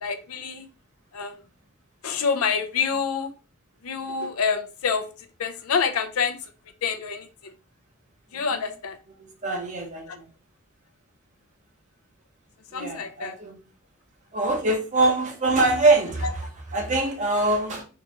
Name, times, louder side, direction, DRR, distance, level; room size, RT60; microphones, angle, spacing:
voice 1, 0.0-0.7 1.1-1.4 2.0-3.3 3.8-5.1 5.4-6.3 6.8-7.5 8.3-9.0 10.1-10.2 12.7-13.4 15.0-15.1 15.6-15.7, left 6 dB, 85° left, 7 dB, 0.5 m, -27 dB
voice 2, 9.2-10.3 12.7-13.6 14.3-17.8, right 2 dB, 35° right, 2 dB, 0.8 m, -24 dB
3.7 x 2.4 x 2.9 m, 0.33 s
head